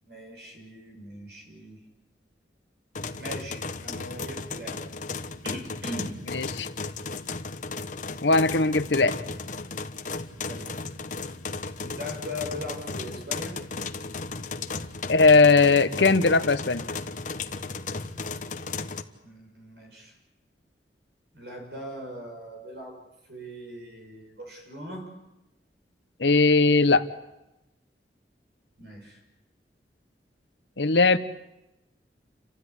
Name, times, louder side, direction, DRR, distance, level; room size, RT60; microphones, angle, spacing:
voice 1, 0.1-1.8 3.1-4.8 5.4-6.2 10.4-10.7 11.8-13.6 19.2-20.1 21.3-23.0 23.3-25.1 28.8-29.2, left 1 dB, 70° right, 2 dB, 6.4 m, -40 dB
sound 1, 2.9-19.0, left 4 dB, 45° left, 1.1 m, -35 dB
voice 2, 6.3-6.7 8.2-9.1 15.1-16.8 26.2-27.0 30.8-31.2, left 3 dB, 90° left, 11 dB, 1.1 m, -19 dB
29.0 x 13.0 x 10.0 m, 0.95 s
head